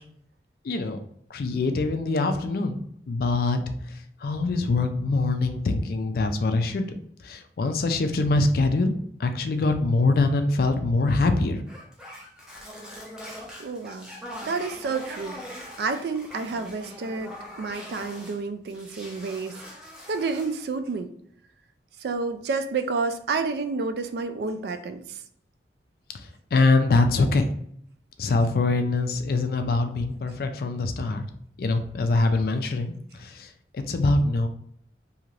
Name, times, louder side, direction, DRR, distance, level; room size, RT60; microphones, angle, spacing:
voice 1, 0.6-1.0 1.3-3.6 4.2-6.9 7.2-8.9 9.2-11.6 26.1-27.5 28.2-31.2 31.6-34.5, left 3 dB, 55° left, 7 dB, 0.3 m, -24 dB
sound 1, 11.7-18.4 18.7-20.6, left 1 dB, 5° right, 0.5 m, -42 dB
voice 2, 13.6-14.1 14.4-15.4 15.8-17.3 17.6-19.6 20.1-21.1 22.0-25.2, right 4 dB, 60° right, 8 dB, 0.3 m, -29 dB
2.7 x 2.5 x 3.1 m, 0.66 s
head